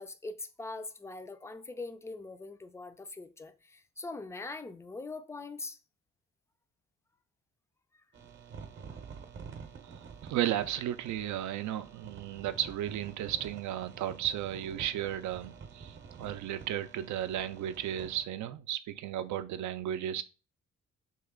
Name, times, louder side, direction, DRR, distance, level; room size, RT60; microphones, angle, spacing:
voice 1, 0.0-5.8, left 3 dB, 10° left, 0.3 m, -42 dB
sound 1, 8.1-18.2, right 6 dB, 40° right, 0.7 m, -49 dB
voice 2, 10.2-20.2, right 11 dB, 70° right, 0.5 m, -34 dB
3.2 x 3.0 x 3.6 m
cardioid pair, 90°, 30 cm